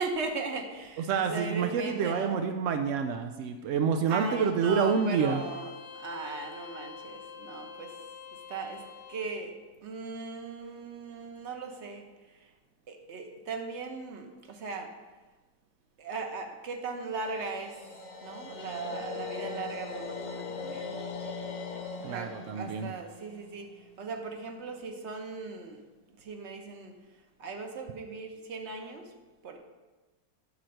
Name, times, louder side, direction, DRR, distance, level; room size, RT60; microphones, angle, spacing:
voice 1, 0.0-2.4 4.1-7.9 8.5-8.8 9.1-9.5 9.8-12.0 12.9-14.9 16.0-17.8 18.2-21.0 22.0-25.8 26.2-26.9 27.4-29.1 29.4-29.6, right 4 dB, 50° right, 4 dB, 1.0 m, -38 dB
voice 2, 1.0-5.4 22.0-22.9, right 6 dB, 75° right, 5 dB, 0.7 m, -28 dB
Bowed string instrument, 4.6-9.4, left 6 dB, 75° left, 1.2 m, -46 dB
sound 1, 17.1-24.2, left 4 dB, 55° left, 0.6 m, -40 dB
8.5 x 4.4 x 6.4 m, 1.2 s
omnidirectional pair, 1.8 m